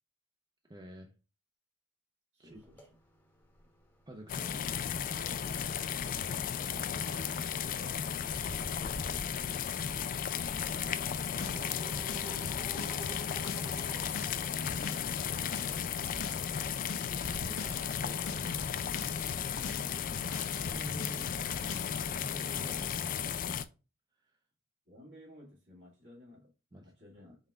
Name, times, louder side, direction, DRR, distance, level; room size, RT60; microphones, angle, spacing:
voice 1, 0.7-1.1 2.4-2.6 4.1-4.6 11.3-11.7 17.4-18.7 20.7-21.4 22.1-23.5 26.7-26.9 27.2-27.3, right 1 dB, 20° right, 0.5 m, -48 dB
voice 2, 2.3-2.9 6.4-10.9 24.9-26.5 26.8-27.4, left 1 dB, 60° right, 2.0 m, -55 dB
sound 1, 2.5-21.3, equal, 10° left, 0.9 m, -50 dB
sound 2, 4.3-23.6, left 8 dB, 45° left, 0.3 m, -35 dB
sound 3, 11.1-22.0, left 4 dB, 85° left, 0.7 m, -44 dB
5.5 x 3.4 x 2.4 m
head